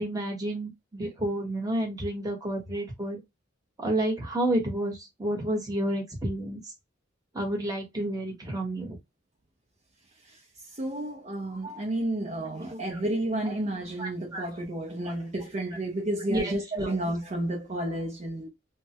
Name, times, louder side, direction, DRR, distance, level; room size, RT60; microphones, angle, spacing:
voice 1, 0.0-3.2 3.8-6.6 7.3-9.0 11.6-11.8 12.7-12.8 14.0-14.5 15.0-15.1 16.3-16.9, right 1 dB, 20° right, 1.0 m, -30 dB
voice 2, 10.8-18.5, right 1 dB, 35° right, 0.6 m, -31 dB
3.2 x 2.1 x 2.8 m
head